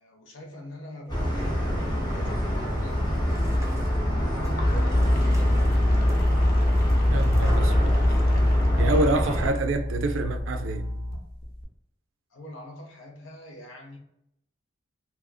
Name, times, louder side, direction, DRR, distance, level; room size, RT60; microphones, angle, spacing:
voice 1, 0.0-3.5 4.2-5.4 12.3-14.0, equal, 75° left, 0.8 m, -43 dB
sound 1, 1.1-9.5, equal, 20° left, 0.8 m, -27 dB
sound 2, 1.1-7.6, right 1 dB, 15° right, 0.5 m, -47 dB
sound 3, 3.1-11.6, left 1 dB, 45° left, 0.5 m, -24 dB
voice 2, 7.1-8.0 8.8-10.9, right 2 dB, 75° right, 0.4 m, -27 dB
2.8 x 2.4 x 2.3 m
head